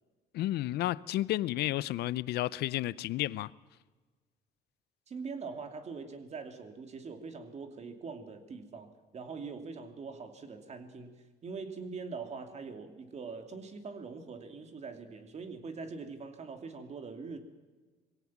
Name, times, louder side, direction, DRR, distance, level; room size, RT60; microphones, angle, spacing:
voice 1, 0.3-3.5, left 15 dB, 75° left, 0.6 m, -32 dB
voice 2, 5.1-11.2 11.4-17.4, right 4 dB, 40° right, 2.7 m, -43 dB
22.0 x 17.0 x 7.3 m
cardioid pair, 110°, 17 cm